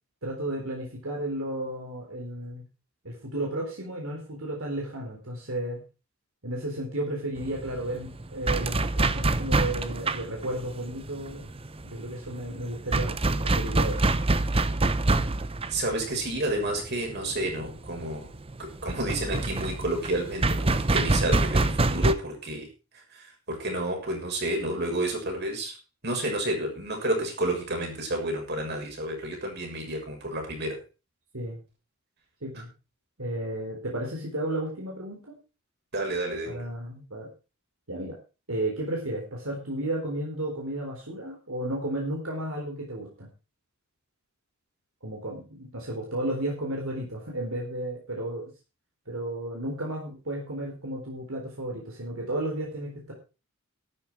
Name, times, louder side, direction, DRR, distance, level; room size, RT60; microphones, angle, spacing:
voice 1, 0.2-2.6 3.0-5.8 6.4-11.5 11.8-14.1 31.3-31.6 32.4-32.7 33.2-35.3 36.5-37.3 37.9-38.2 38.5-43.3 45.0-48.5 49.1-53.1, right 1 dB, 75° right, 0 dB, 4.0 m, -33 dB
sound 1, 7.4-22.1, right 2 dB, 25° right, 0.7 m, -26 dB
voice 2, 15.7-18.3 18.6-25.8 26.0-30.8 35.9-36.6, right 1 dB, 50° right, 1 dB, 6.6 m, -30 dB
13.0 x 12.0 x 4.7 m, 0.32 s
head